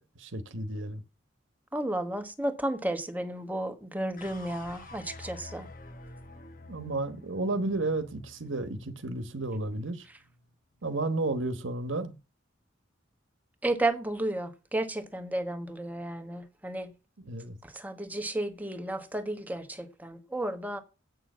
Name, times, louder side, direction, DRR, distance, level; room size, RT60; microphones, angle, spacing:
voice 1, 0.2-1.0 6.7-10.1 10.8-12.1 17.3-17.6, right 2 dB, 80° right, 1.2 m, -32 dB
voice 2, 1.7-5.7 13.6-16.9 17.6-20.8, right 1 dB, 10° right, 1.2 m, -33 dB
sound 1, 4.2-10.5, left 2 dB, 45° left, 1.2 m, -49 dB
8.7 x 6.7 x 7.2 m
head